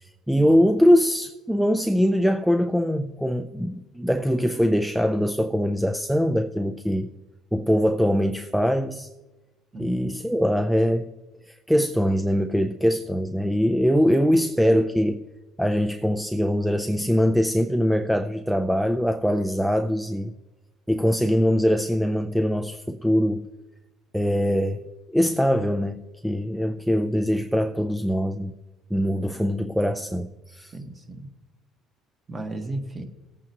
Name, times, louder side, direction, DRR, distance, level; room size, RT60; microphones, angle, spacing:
voice 1, 0.0-7.1 7.5-9.1 9.8-11.1 11.5-15.3 15.6-20.3 20.9-23.5 24.1-24.8 25.1-28.5 28.9-30.7, equal, ahead, 0.5 m, -22 dB
voice 2, 9.7-10.1 30.7-31.3 32.3-33.0, right 2 dB, 25° right, 1.5 m, -34 dB
19.0 x 8.7 x 3.0 m
cardioid pair, 120°, 0 cm